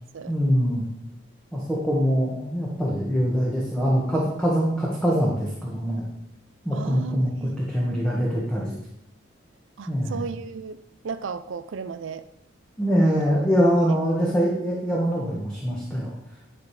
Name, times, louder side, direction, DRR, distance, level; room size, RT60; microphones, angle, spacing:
voice 1, 0.3-0.8 1.5-6.0 6.6-8.7 9.9-10.2 12.8-16.1, equal, 5° left, -5 dB, 1.4 m, -23 dB
voice 2, 6.7-8.1 9.8-12.2, right 5 dB, 75° right, 12 dB, 0.4 m, -35 dB
10.5 x 5.0 x 4.8 m, 0.79 s
head